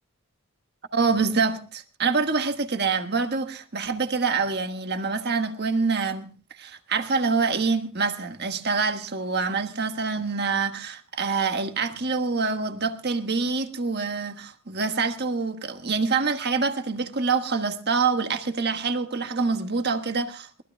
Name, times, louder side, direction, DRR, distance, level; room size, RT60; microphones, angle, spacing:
voice 1, 0.9-6.3 6.6-20.6, right 4 dB, 50° right, 1.5 m, -26 dB
22.0 x 19.0 x 2.2 m
head